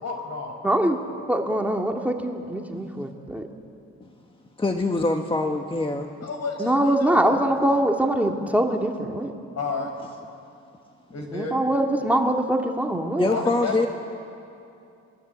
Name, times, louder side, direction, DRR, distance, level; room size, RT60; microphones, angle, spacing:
voice 1, 0.0-0.6 6.2-7.4 9.6-9.9 11.1-11.6 13.2-13.9, left 4 dB, 60° left, 4 dB, 5.5 m, -31 dB
voice 2, 0.6-1.0 1.3-3.5 6.6-9.3 11.3-13.3, right 1 dB, 5° right, 2 dB, 2.1 m, -23 dB
voice 3, 4.6-6.1 13.2-13.9, left 2 dB, 15° left, 4 dB, 1.4 m, -24 dB
27.0 x 20.5 x 8.2 m, 2.6 s
cardioid pair, 90°, 30 cm